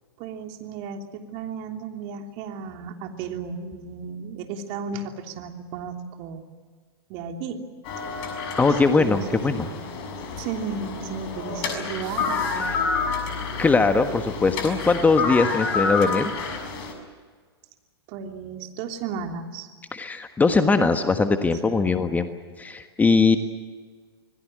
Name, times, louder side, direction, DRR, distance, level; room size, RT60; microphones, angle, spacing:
voice 1, 0.2-6.4 7.1-7.6 8.7-9.8 10.4-12.8 18.1-19.7 20.6-21.1 21.6-22.0, right 6 dB, 45° right, 4 dB, 3.2 m, -34 dB
sound 1, 7.8-16.9, left 4 dB, 45° left, 6.6 m, -29 dB
voice 2, 8.6-9.7 13.6-16.3 19.9-22.3 22.6-23.4, left 4 dB, 10° left, 8 dB, 1.4 m, -20 dB
26.5 x 20.5 x 7.7 m, 1.6 s
hypercardioid pair, 110°, 13 cm